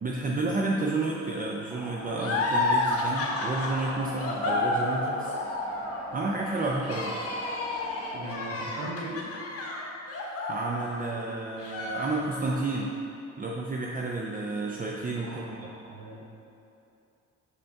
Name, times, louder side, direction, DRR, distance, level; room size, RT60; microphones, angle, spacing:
voice 1, 0.0-5.3 6.1-7.1 10.5-12.9 13.4-15.7, right 2 dB, 30° right, -1 dB, 0.5 m, -31 dB
sound 1, 1.7-8.3, equal, ahead, 1.3 m, -40 dB
sound 2, 2.2-11.2 11.6-12.6, left 2 dB, 50° left, 1.1 m, -31 dB
voice 2, 8.1-9.2 15.2-16.2, right 1 dB, 80° right, -3 dB, 1.1 m, -39 dB
6.6 x 5.2 x 3.5 m, 2.8 s
cardioid pair, 90°, 30 cm